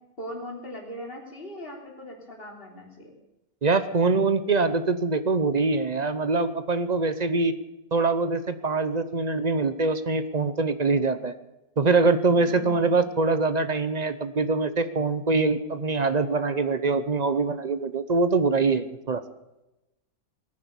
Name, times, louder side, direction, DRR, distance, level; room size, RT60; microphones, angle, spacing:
voice 1, 0.2-3.1 12.4-12.9, left 1 dB, 35° left, 0 dB, 3.8 m, -39 dB
voice 2, 3.6-7.5 7.9-11.3 11.8-19.2, right 3 dB, 35° right, 12 dB, 0.7 m, -24 dB
20.0 x 9.8 x 7.1 m, 0.97 s
omnidirectional pair, 1.6 m